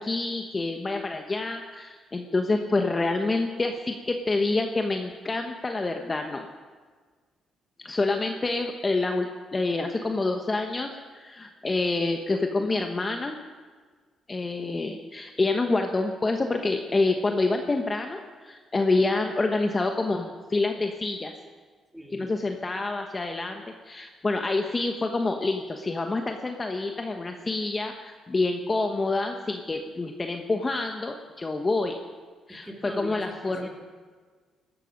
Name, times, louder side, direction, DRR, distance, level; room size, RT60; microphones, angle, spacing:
voice 1, 0.0-6.5 7.8-13.4 14.3-21.3 22.1-32.0 32.5-33.7, left 3 dB, 25° left, 4 dB, 1.1 m, -27 dB
voice 2, 21.9-22.3 32.5-33.7, equal, 5° right, 1 dB, 2.9 m, -40 dB
17.5 x 13.0 x 5.3 m, 1.5 s
cardioid pair, 90°, 0 cm